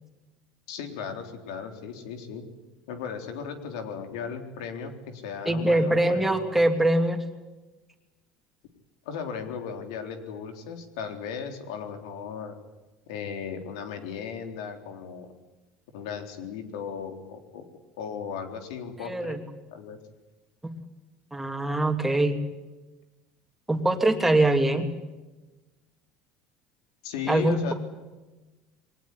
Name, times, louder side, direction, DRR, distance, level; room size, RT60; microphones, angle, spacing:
voice 1, 0.7-2.4 2.9-6.5 9.1-12.6 13.1-15.3 15.9-17.7 18.0-19.4 19.7-20.0 27.0-27.7, left 6 dB, 90° left, 6 dB, 3.7 m, -36 dB
voice 2, 5.5-7.2 19.0-19.4 20.6-20.7 21.3-22.4 23.7-24.9 27.3-27.7, right 1 dB, 5° right, 4 dB, 2.9 m, -23 dB
22.5 x 19.0 x 9.9 m, 1.1 s
supercardioid pair, 125°, 3 cm